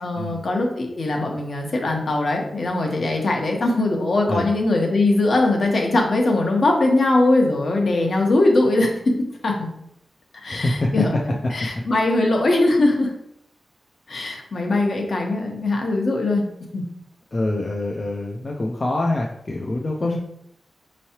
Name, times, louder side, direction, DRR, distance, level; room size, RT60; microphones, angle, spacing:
voice 1, 0.0-9.1 9.4-9.7 10.3-13.1 14.1-16.4 16.7-16.8 20.0-20.2, left 2 dB, 60° left, 1 dB, 1.0 m, -21 dB
voice 2, 10.5-10.9 17.3-20.2, left 2 dB, 35° left, -1 dB, 0.4 m, -25 dB
5.5 x 3.1 x 2.8 m, 0.76 s
wide cardioid pair, 130°, 0 cm